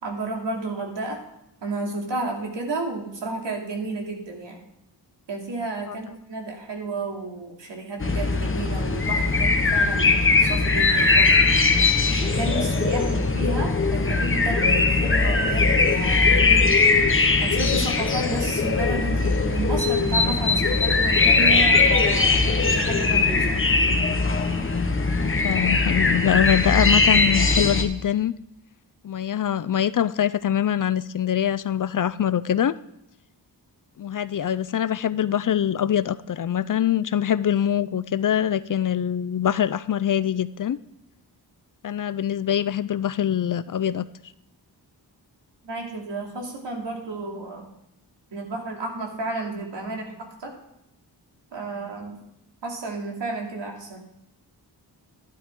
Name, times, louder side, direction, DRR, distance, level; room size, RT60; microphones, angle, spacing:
voice 1, 0.0-1.2 1.6-4.6 5.3-11.5 12.2-16.6 17.4-23.6 45.6-47.7 48.3-50.1 50.4-50.5 51.5-52.2 52.6-54.0, right 2 dB, 85° right, 0 dB, 2.8 m, -32 dB
sound 1, 8.0-27.8, left 3 dB, 30° left, 1.2 m, -20 dB
voice 2, 25.2-28.3 29.0-32.7 34.0-40.8 41.8-44.1, left 10 dB, 50° left, 16 dB, 0.5 m, -24 dB
12.0 x 11.5 x 3.7 m, 0.84 s
wide cardioid pair, 110°, 42 cm